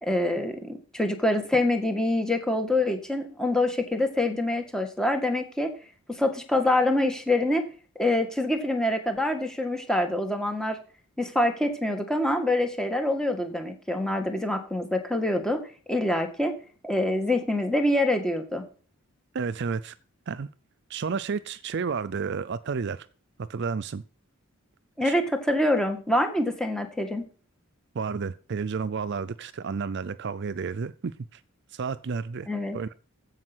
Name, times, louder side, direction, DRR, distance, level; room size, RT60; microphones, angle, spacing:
voice 1, 0.0-5.7 6.1-7.6 8.0-10.8 11.2-15.6 15.9-16.5 16.8-18.6 25.0-27.3 32.5-32.8, left 1 dB, 5° left, 1.7 m, -25 dB
voice 2, 19.3-20.0 20.3-20.5 20.9-23.1 23.4-24.0 25.0-25.2 27.9-31.4 31.7-32.5 32.7-32.9, right 5 dB, 55° right, 0.5 m, -31 dB
15.0 x 5.5 x 6.1 m
head